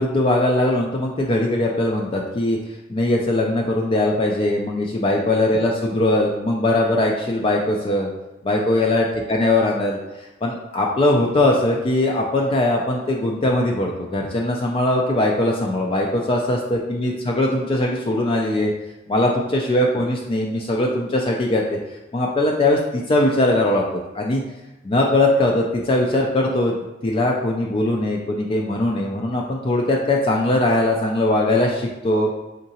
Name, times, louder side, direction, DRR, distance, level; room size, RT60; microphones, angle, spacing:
voice 1, 0.0-2.6 2.9-8.1 8.4-18.7 19.1-21.8 22.1-23.8 24.1-24.4 24.8-26.8 27.0-32.3, left 1 dB, 30° left, -1 dB, 0.3 m, -20 dB
3.8 x 3.5 x 2.8 m, 1.0 s
head